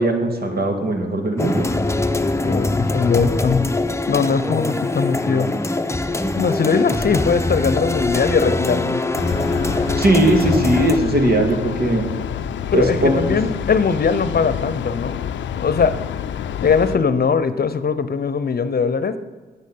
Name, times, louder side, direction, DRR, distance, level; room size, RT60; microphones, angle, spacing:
voice 1, 0.0-1.7 10.0-12.1 12.7-13.4, right 1 dB, 55° right, 4 dB, 2.1 m, -19 dB
sound 1, 1.4-11.0, left 2 dB, 15° left, 0.8 m, -22 dB
voice 2, 2.4-3.6 4.1-5.5 6.4-9.0 12.7-15.2 15.6-16.0 16.6-19.2, left 5 dB, 55° left, 13 dB, 0.8 m, -20 dB
Train, 9.1-17.0, left 9 dB, 85° left, 0.5 m, -28 dB
9.5 x 9.2 x 5.6 m, 1.4 s
supercardioid pair, 45°, 19 cm